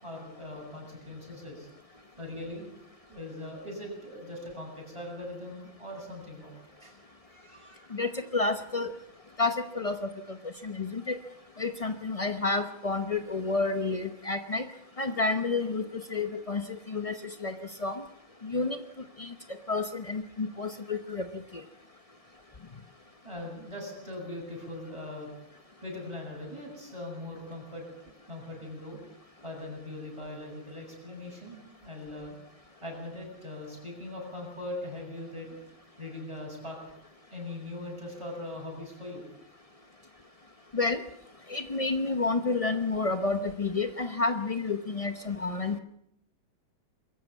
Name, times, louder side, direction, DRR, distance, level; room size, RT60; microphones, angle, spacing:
voice 1, 0.0-1.7 2.2-2.7 3.1-6.9 7.3-7.9 11.0-11.1 23.2-25.3 25.8-29.0 29.4-32.3 32.8-35.6 36.0-36.8 37.3-39.2, left 1 dB, 15° right, -1 dB, 8.0 m, -41 dB
voice 2, 7.9-8.9 9.4-10.4 10.6-11.2 11.6-14.7 15.0-18.0 18.4-18.8 19.2-19.3 19.7-21.6 40.7-41.0 41.5-45.8, left 3 dB, 60° left, 9 dB, 0.3 m, -30 dB
22.5 x 14.5 x 8.3 m, 0.77 s
omnidirectional pair, 2.2 m